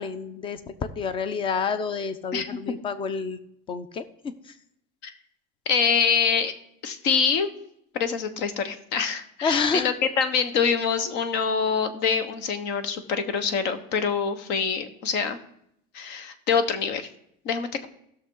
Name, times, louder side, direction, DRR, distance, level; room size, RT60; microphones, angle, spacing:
voice 1, 0.0-3.4 3.7-4.0 9.4-9.9, left 5 dB, 25° left, 13 dB, 0.7 m, -28 dB
voice 2, 5.7-6.5 6.8-7.5 7.9-15.4 15.9-17.1 17.4-17.9, left 6 dB, 60° left, 10 dB, 1.3 m, -25 dB
15.5 x 6.6 x 3.9 m, 0.74 s
cardioid pair, 155°, 21 cm